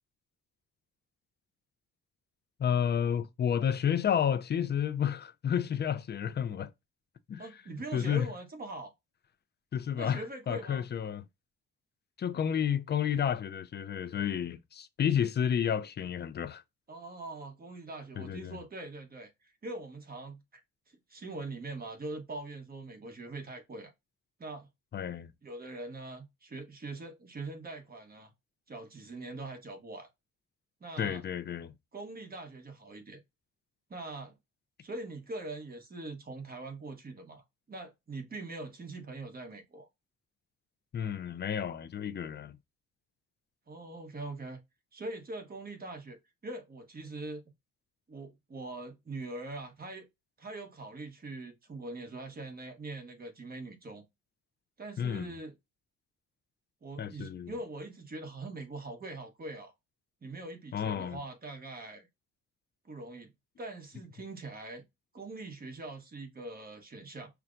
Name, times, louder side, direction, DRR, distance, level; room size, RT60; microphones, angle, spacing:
voice 1, 2.6-6.7 7.3-7.5 7.9-8.3 9.7-11.2 12.2-16.6 18.2-18.6 24.9-25.3 31.0-31.7 40.9-42.6 55.0-55.3 57.0-57.5 60.7-61.2, left 8 dB, 35° left, 0.5 m, -31 dB
voice 2, 7.4-8.9 10.0-10.9 16.9-20.6 20.9-23.9 24.4-24.7 25.4-28.3 28.7-30.1 30.8-31.2 31.9-33.2 33.9-34.3 34.8-39.9 43.7-44.6 44.9-46.2 46.4-47.4 48.1-50.1 50.4-54.0 54.8-55.5 56.8-59.7 60.2-62.1 62.8-63.3 63.6-64.8 65.1-67.3, right 2 dB, 30° right, 1.2 m, -42 dB
5.7 x 2.2 x 2.5 m
cardioid pair, 90°, 30 cm